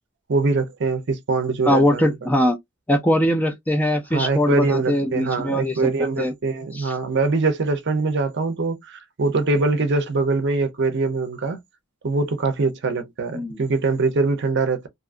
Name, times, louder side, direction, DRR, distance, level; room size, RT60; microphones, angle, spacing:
voice 1, 0.3-2.1 4.1-11.6 12.0-14.9, right 3 dB, 50° right, 0.6 m, -23 dB
voice 2, 1.7-2.6 2.9-5.9 6.2-6.3 6.7-6.9 13.3-13.6, equal, 10° left, 0.4 m, -21 dB
2.6 x 2.4 x 2.4 m
head